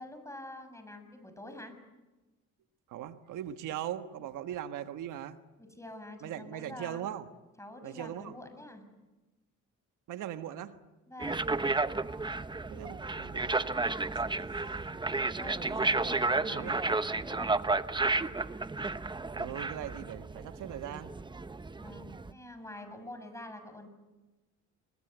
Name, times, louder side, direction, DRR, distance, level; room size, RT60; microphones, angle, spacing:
voice 1, 0.0-1.7 5.6-7.1 7.6-8.8 11.1-11.5 15.4-17.5 21.8-23.9, left 1 dB, 10° left, 8 dB, 6.9 m, -46 dB
voice 2, 2.9-5.4 6.2-7.3 7.8-8.4 10.1-10.8 12.7-13.8 15.6-16.8 19.3-21.1, right 11 dB, 90° right, 9 dB, 1.4 m, -40 dB
sound 1, 11.2-22.3, right 3 dB, 15° right, 0.8 m, -32 dB
28.0 x 23.0 x 8.0 m, 1.1 s
cardioid pair, 90°, 30 cm